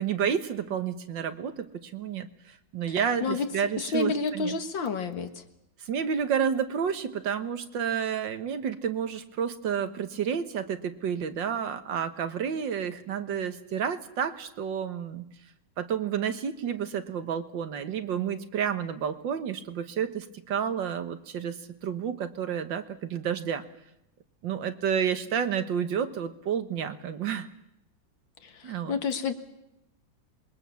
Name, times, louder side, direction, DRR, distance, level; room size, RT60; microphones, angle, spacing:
voice 1, 0.0-2.3 2.7-4.6 5.9-15.3 15.8-21.6 21.8-23.6 24.4-27.5 28.6-29.0, right 8 dB, 70° right, 10 dB, 1.9 m, -30 dB
voice 2, 2.9-3.5 3.8-5.4 28.4-29.3, left 5 dB, 75° left, 8 dB, 2.4 m, -30 dB
26.5 x 21.5 x 7.0 m, 0.85 s
omnidirectional pair, 2.1 m